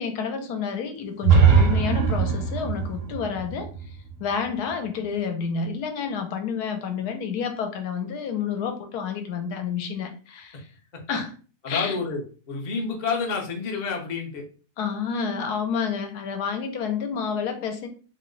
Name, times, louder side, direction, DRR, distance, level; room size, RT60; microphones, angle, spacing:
voice 1, 0.0-10.7 11.1-11.3 11.7-12.0 14.8-17.9, left 6 dB, 75° left, 1.1 m, -29 dB
sound 1, 1.2-5.1, right 6 dB, 70° right, 0.8 m, -21 dB
voice 2, 11.6-12.2 12.5-14.4, left 4 dB, 50° left, 0.5 m, -28 dB
2.8 x 2.1 x 3.7 m
omnidirectional pair, 1.8 m